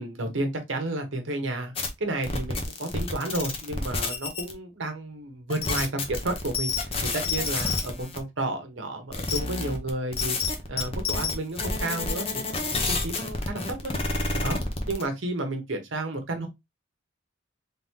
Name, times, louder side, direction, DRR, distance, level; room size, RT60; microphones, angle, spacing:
voice 1, 0.0-10.4 10.7-13.9 14.3-14.6 14.9-16.5, right 2 dB, 75° right, 1.1 m, -32 dB
sound 1, 1.8-1.9 2.2-4.5 5.5-8.2 9.1-15.0, left 3 dB, 30° left, 0.8 m, -29 dB
3.6 x 2.9 x 3.6 m
head